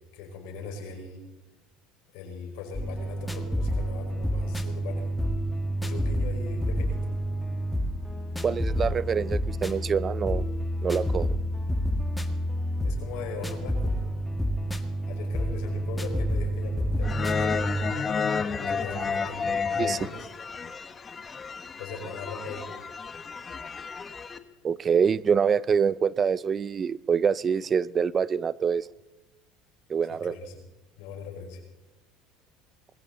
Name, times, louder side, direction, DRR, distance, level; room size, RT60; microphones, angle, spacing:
voice 1, 0.1-1.2 2.1-5.1 5.8-7.1 12.8-13.9 15.1-17.6 18.6-20.3 21.8-22.6 30.1-30.5 31.0-31.6, left 4 dB, 75° left, 3 dB, 5.1 m, -39 dB
sound 1, 2.7-17.9, equal, 10° left, 1.5 m, -29 dB
voice 2, 8.4-10.4 10.8-11.4 19.0-19.1 19.8-20.0 24.6-28.9 29.9-30.4, right 6 dB, 30° right, 20 dB, 0.5 m, -25 dB
sound 2, 17.0-24.4, left 5 dB, 25° left, 1.2 m, -31 dB
21.5 x 16.0 x 4.0 m, 1.1 s
supercardioid pair, 105°, 0 cm